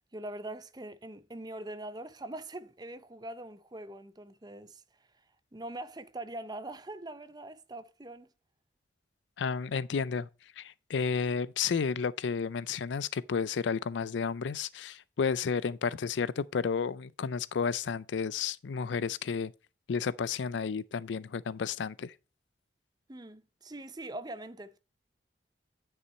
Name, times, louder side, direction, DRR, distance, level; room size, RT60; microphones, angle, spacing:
voice 1, 0.1-4.8 5.5-8.3 23.1-24.8, right 1 dB, 20° right, 0.6 m, -42 dB
voice 2, 9.4-10.3 10.6-19.5 19.9-22.1, left 6 dB, 75° left, 0.4 m, -32 dB
9.7 x 5.7 x 4.2 m
head